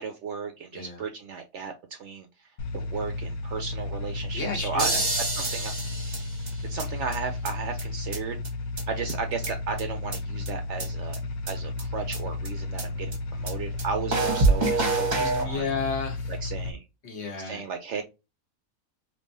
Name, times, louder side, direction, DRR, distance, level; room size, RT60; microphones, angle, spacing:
voice 1, 0.0-2.3 2.7-4.9 5.5-5.7 6.7-8.4 8.9-11.2 11.5-15.7 16.4-16.8 17.5-18.0, right 5 dB, 65° right, 0.7 m, -34 dB
voice 2, 0.7-1.0 4.3-5.0 15.1-16.4 17.0-17.6, left 4 dB, 50° left, 1.1 m, -32 dB
sound 1, 2.6-16.7, left 3 dB, 80° left, 1.2 m, -33 dB
sound 2, 4.8-6.8 7.1-7.2 7.4-7.5 7.8-7.9 8.1-8.2 8.4-8.5 8.8-8.9 9.1-9.8 10.1-10.2 10.5-10.6 10.8-10.9 11.1-11.2 11.5-11.6 11.8-11.9 12.1-12.2 12.4-12.5 12.8-12.9 13.1-13.2 13.5-13.6 13.8-13.9 14.1-15.4, right 3 dB, 35° right, 1.0 m, -26 dB
3.6 x 2.7 x 2.6 m
omnidirectional pair, 1.5 m